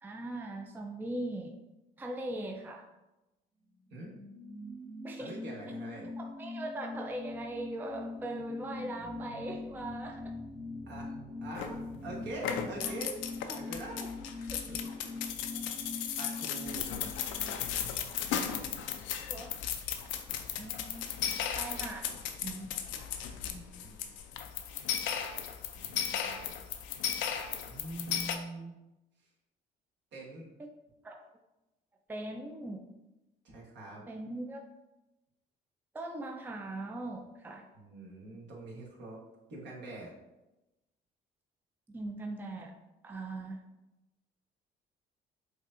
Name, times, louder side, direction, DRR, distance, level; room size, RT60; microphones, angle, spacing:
voice 1, 0.0-1.5 2.0-2.9 5.0-5.4 6.2-10.3 12.8-12.9 14.5-14.6 19.2-19.6 20.6-21.2 21.5-22.1 22.4-22.7 30.6-30.7 31.0-31.2 32.1-32.8 34.1-34.6 35.9-37.7 41.9-42.8 43.0-43.6, right 2 dB, 10° right, 3 dB, 0.4 m, -40 dB
sound 1, 3.7-19.0 19.2-19.3, left 3 dB, 45° right, 0.8 m, -43 dB
voice 2, 5.2-6.1 10.9-11.1 11.4-13.2 13.4-14.1 14.7-15.1 16.2-16.9 23.3-24.1 25.8-26.5 27.7-28.7 30.1-30.5 33.4-34.0 37.7-39.2 39.5-40.1, right 2 dB, 65° right, -3 dB, 1.2 m, -44 dB
sound 2, 6.9-13.2, right 2 dB, 85° right, 0.9 m, -52 dB
sound 3, 11.5-12.0 12.3-28.4, left 9 dB, 75° left, 0.4 m, -36 dB
4.7 x 2.6 x 2.5 m, 0.99 s
supercardioid pair, 65°, 20 cm